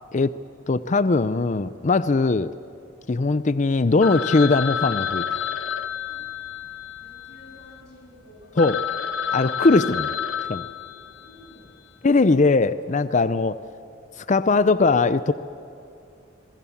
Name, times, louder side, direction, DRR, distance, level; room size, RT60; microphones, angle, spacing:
voice 1, 0.7-2.5 3.1-5.2 8.6-8.8 9.3-10.1 10.5-10.7 12.0-13.6 14.2-15.3, left 3 dB, 40° left, 14 dB, 0.5 m, -20 dB
Telephone, 4.0-7.8 8.3-8.4 8.6-11.4, left 8 dB, 80° left, 1.3 m, -29 dB
voice 2, 7.0-8.7 11.2-12.2, left 1 dB, 60° left, -1 dB, 7.4 m, -51 dB
27.5 x 23.0 x 7.1 m, 2.7 s
head